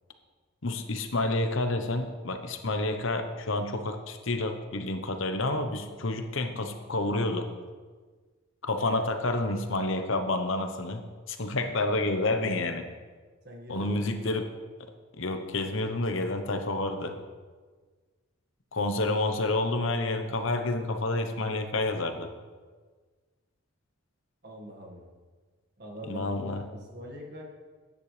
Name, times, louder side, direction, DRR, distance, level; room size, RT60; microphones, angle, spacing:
voice 1, 0.6-7.5 8.6-11.0 11.3-12.9 13.7-14.5 15.2-17.2 18.7-22.3 26.1-26.6, left 2 dB, 70° left, 6 dB, 1.0 m, -29 dB
voice 2, 13.4-14.1 24.4-25.1 25.8-26.4 26.7-27.4, equal, 50° right, 0 dB, 1.8 m, -43 dB
14.0 x 9.9 x 3.3 m, 1.4 s
head